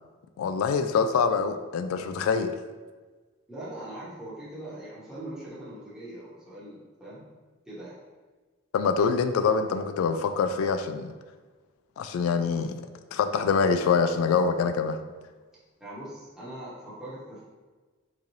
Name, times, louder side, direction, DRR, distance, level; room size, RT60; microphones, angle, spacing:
voice 1, 0.4-2.5 8.7-11.1 12.0-12.8 13.1-15.0, left 5 dB, 90° left, 8 dB, 0.3 m, -25 dB
voice 2, 3.5-7.3 7.7-8.0 15.8-17.5, right 1 dB, 5° right, -10 dB, 0.9 m, -41 dB
3.8 x 3.1 x 2.7 m, 1.3 s
head